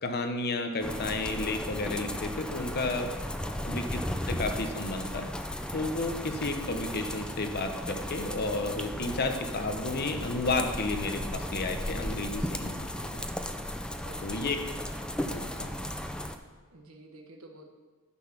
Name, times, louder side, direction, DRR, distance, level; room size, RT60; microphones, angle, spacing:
voice 1, 0.0-3.1 3.6-4.0 4.3-5.3 5.7-13.2 14.2-14.6 15.2-15.7, left 2 dB, 50° left, 5 dB, 0.9 m, -32 dB
sound 1, 0.8-16.4, left 1 dB, 5° left, 0.4 m, -35 dB
voice 2, 14.0-14.5 16.7-17.7, right 2 dB, 80° right, 3 dB, 1.2 m, -51 dB
9.9 x 5.9 x 5.9 m, 1.4 s
head